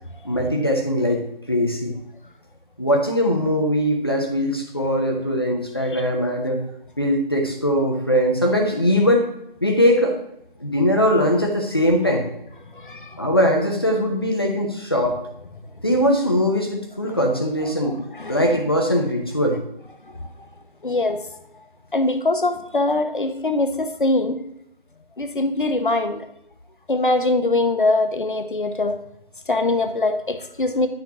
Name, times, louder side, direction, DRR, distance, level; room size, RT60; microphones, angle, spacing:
voice 1, 0.2-1.2 1.5-1.9 2.8-6.6 7.0-9.3 9.6-10.1 10.6-12.2 13.2-15.2 15.8-18.0 18.3-19.6, equal, 25° left, 1 dB, 0.8 m, -20 dB
voice 2, 12.7-13.2 17.0-17.2 17.8-18.6 20.2-20.5 20.8-21.3 21.9-24.4 25.2-26.3 26.9-29.0 29.5-30.9, left 2 dB, 55° left, 7 dB, 0.9 m, -23 dB
10.0 x 6.1 x 2.9 m, 0.79 s
figure-of-eight pair, 165°, 30 cm